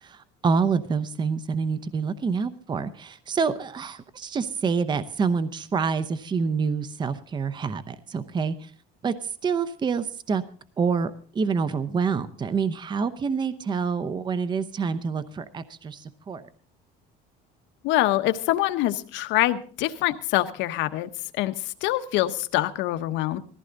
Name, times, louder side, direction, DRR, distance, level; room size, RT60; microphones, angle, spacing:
voice 1, 0.0-8.7 9.0-9.1 9.4-10.4 10.8-16.4, right 5 dB, 20° right, 13 dB, 0.8 m, -27 dB
voice 2, 17.8-21.1 21.4-23.4, left 15 dB, 70° left, 9 dB, 1.2 m, -25 dB
19.0 x 15.0 x 3.9 m, 0.41 s
cardioid pair, 140°, 20 cm